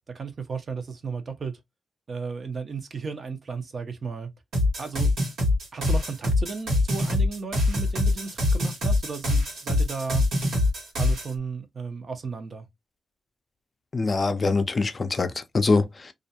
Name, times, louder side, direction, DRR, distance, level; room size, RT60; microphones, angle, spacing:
voice 1, 0.1-1.5 2.1-4.3 4.8-5.1 5.7-10.2 11.0-12.7, right 5 dB, 55° right, 0.6 m, -34 dB
sound 1, 4.5-11.3, left 2 dB, 85° right, 1.3 m, -24 dB
voice 2, 13.9-16.1, left 3 dB, 40° left, 0.4 m, -24 dB
2.4 x 2.2 x 2.7 m
cardioid pair, 70°, 0 cm